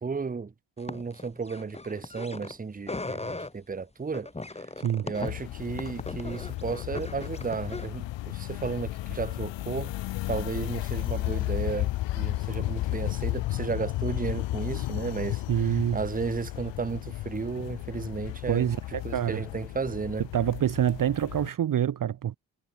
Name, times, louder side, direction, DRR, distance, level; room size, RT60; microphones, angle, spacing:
voice 1, 0.0-4.7 5.0-10.0 10.3-18.7 19.0-20.2, right 5 dB, 20° right, 0.8 m, -34 dB
sound 1, 0.8-2.6 2.8-3.5 4.1-7.9, left 2 dB, 15° left, 1.4 m, -38 dB
voice 2, 4.8-5.1 15.5-16.0 18.5-19.4 20.3-22.4, right 10 dB, 45° right, 0.7 m, -26 dB
sound 2, 5.2-21.5, left 16 dB, 75° left, 0.6 m, -33 dB
cardioid pair, 60°, 44 cm